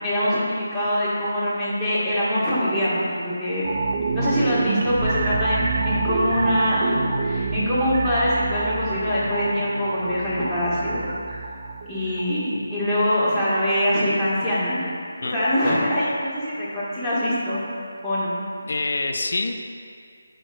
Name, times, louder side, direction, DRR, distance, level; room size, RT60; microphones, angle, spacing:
voice 1, 0.0-3.7 4.1-11.4 11.9-14.9 15.2-17.6 18.0-18.7, equal, ahead, -15 dB, 1.5 m, -24 dB
sound 1, 3.6-13.0 13.3-13.4, right 4 dB, 40° right, 0.4 m, -27 dB
voice 2, 18.7-19.5, left 3 dB, 60° left, 5 dB, 0.4 m, -26 dB
8.8 x 5.1 x 2.4 m, 2.2 s
figure-of-eight pair, 155°, 0 cm